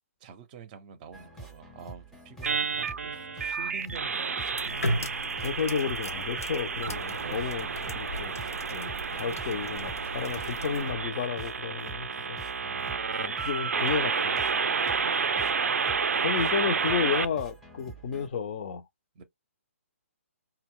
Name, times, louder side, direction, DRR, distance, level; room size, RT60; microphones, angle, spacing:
voice 1, 0.2-5.2 7.2-8.0 15.1-15.6 16.4-16.9 19.1-19.2, right 5 dB, 35° right, 0.6 m, -47 dB
sound 1, 1.1-18.3, right 2 dB, ahead, 0.6 m, -47 dB
sound 2, 2.4-17.3, right 5 dB, 80° right, 0.4 m, -30 dB
sound 3, 4.6-10.8, left 1 dB, 90° left, 0.7 m, -37 dB
voice 2, 5.4-7.7 7.9-8.3 8.7-12.4 13.2-14.4 16.2-18.8, left 6 dB, 45° left, 0.5 m, -32 dB
2.2 x 2.0 x 3.6 m
hypercardioid pair, 140°, 8 cm